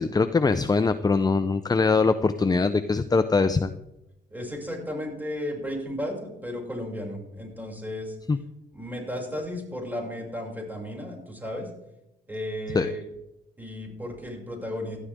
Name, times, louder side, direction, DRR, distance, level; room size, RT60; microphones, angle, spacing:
voice 1, 0.0-3.7 8.3-8.4 12.7-12.9, left 4 dB, 20° left, 11 dB, 0.7 m, -22 dB
voice 2, 4.3-8.2 8.7-11.7 12.3-13.0 13.6-15.0, equal, 10° right, 0 dB, 6.8 m, -34 dB
18.0 x 13.0 x 3.7 m, 0.89 s
cardioid pair, 90°, 20 cm